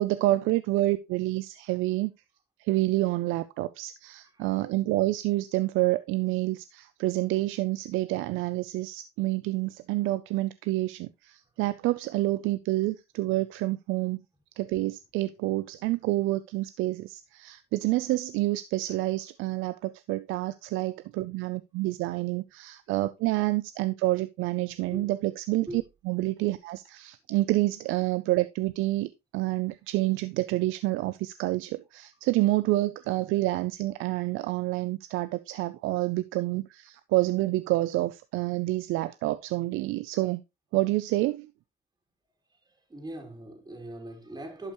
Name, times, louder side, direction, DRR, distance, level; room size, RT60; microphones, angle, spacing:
voice 1, 0.0-2.1 2.6-14.2 14.6-40.4 40.7-41.5, right 18 dB, 85° right, 0.5 m, -28 dB
voice 2, 42.9-44.7, right 1 dB, 20° right, 2.9 m, -40 dB
11.5 x 5.3 x 3.0 m
cardioid pair, 90°, 20 cm